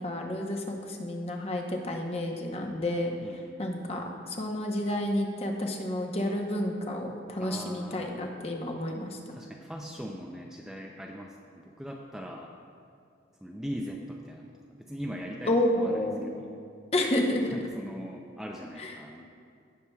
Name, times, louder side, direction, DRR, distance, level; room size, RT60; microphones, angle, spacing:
voice 1, 0.0-3.1 3.6-9.2 15.5-16.2 16.9-17.5 18.8-18.9, left 1 dB, 35° left, 1 dB, 0.8 m, -30 dB
voice 2, 3.2-3.6 7.4-8.1 9.3-12.5 13.4-14.5 14.8-16.6 17.5-19.2, equal, 5° right, -1 dB, 0.4 m, -40 dB
16.5 x 6.7 x 2.3 m, 2.3 s
head